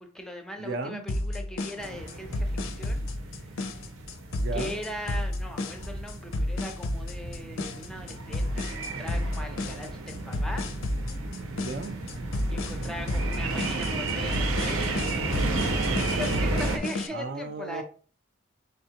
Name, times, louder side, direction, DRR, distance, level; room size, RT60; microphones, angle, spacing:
voice 1, 0.0-3.0 3.3-3.7 4.5-10.7 12.5-15.5 16.0-17.8, equal, 5° left, 0.5 m, -40 dB
voice 2, 0.6-1.1 4.3-4.8 11.6-12.0 17.1-17.8, right 3 dB, 55° right, 0.4 m, -35 dB
sound 1, 1.1-17.1, left 1 dB, 80° left, 0.5 m, -31 dB
sound 2, 1.8-16.8, right 2 dB, 85° right, 0.7 m, -33 dB
4.0 x 3.4 x 2.8 m
head